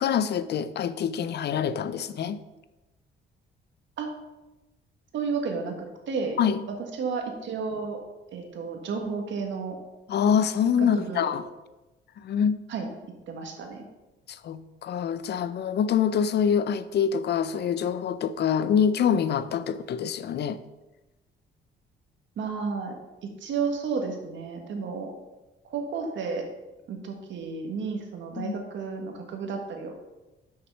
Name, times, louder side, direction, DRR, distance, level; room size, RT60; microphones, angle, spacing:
voice 1, 0.0-2.4 6.4-6.6 10.1-11.4 12.2-12.6 14.3-20.6 28.4-28.5, left 7 dB, 60° left, 14 dB, 0.5 m, -25 dB
voice 2, 5.1-5.7 6.1-6.4 6.7-8.0 8.3-9.8 10.8-11.3 12.7-12.9 13.3-13.8 22.4-23.0 23.2-25.1 25.6-26.5 26.9-30.0, right 5 dB, 70° right, 3 dB, 1.6 m, -32 dB
6.5 x 5.7 x 5.5 m, 1.1 s
cardioid pair, 90°, 20 cm